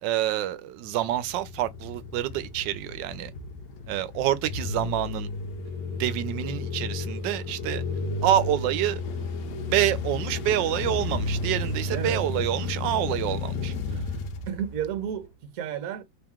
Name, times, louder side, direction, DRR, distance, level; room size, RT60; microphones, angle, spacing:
voice 1, 0.0-3.3 3.9-5.3 5.9-7.8 8.2-9.0 9.7-14.0, right 12 dB, 80° right, 1.2 m, -27 dB
sound 1, 0.9-15.2, left 3 dB, 75° left, 1.3 m, -33 dB
voice 2, 11.9-12.3 14.5-16.0, right 9 dB, 60° right, 1.1 m, -32 dB
3.2 x 2.9 x 3.5 m
omnidirectional pair, 2.0 m